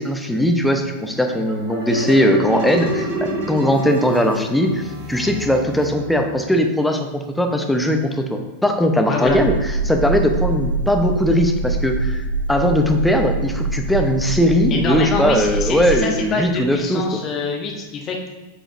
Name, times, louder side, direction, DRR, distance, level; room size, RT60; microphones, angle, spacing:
voice 1, 0.0-9.5 9.8-12.2 12.5-17.2, equal, 5° left, 4 dB, 0.7 m, -19 dB
sound 1, 1.2-6.6, equal, 50° right, 2.0 m, -29 dB
voice 2, 9.0-9.4 14.7-18.3, left 4 dB, 30° left, 1 dB, 1.2 m, -25 dB
sound 2, 9.2-16.0, right 2 dB, 80° right, 0.7 m, -24 dB
8.7 x 5.0 x 2.5 m, 1.2 s
figure-of-eight pair, 90°, 0 cm